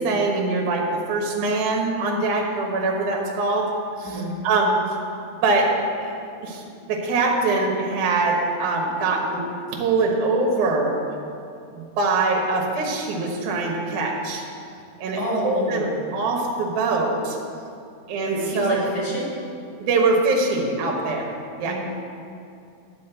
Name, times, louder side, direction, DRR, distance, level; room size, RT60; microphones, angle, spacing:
voice 1, 0.0-3.7 4.0-4.2 4.4-4.8 5.1-5.7 6.0-6.1 6.4-9.4 9.7-11.0 11.7-14.4 15.0-15.2 15.4-15.9 16.1-17.4 18.1-18.9 19.8-21.8, right 3 dB, 65° right, 0 dB, 2.5 m, -23 dB
voice 2, 15.1-16.1 18.2-19.4 21.6-21.7, right 1 dB, 45° right, -8 dB, 0.3 m, -28 dB
9.3 x 5.2 x 8.0 m, 2.5 s
omnidirectional pair, 4.1 m